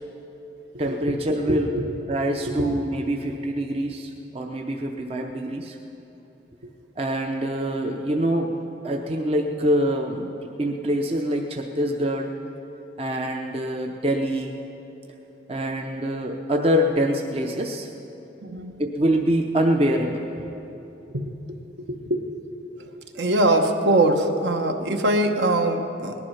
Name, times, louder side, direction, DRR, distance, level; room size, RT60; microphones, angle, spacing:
voice 1, 0.8-1.7 2.1-5.8 7.0-8.6 8.8-12.3 13.0-14.6 15.5-17.9 18.8-20.5, equal, 30° right, 3 dB, 0.6 m, -25 dB
voice 2, 1.5-1.9 2.4-2.7 6.6-6.7 18.4-18.8 21.1-21.2 21.8-22.3 22.8-22.9 23.1-26.2, right 1 dB, 65° right, 5 dB, 1.0 m, -23 dB
18.5 x 11.0 x 5.6 m, 3.0 s
head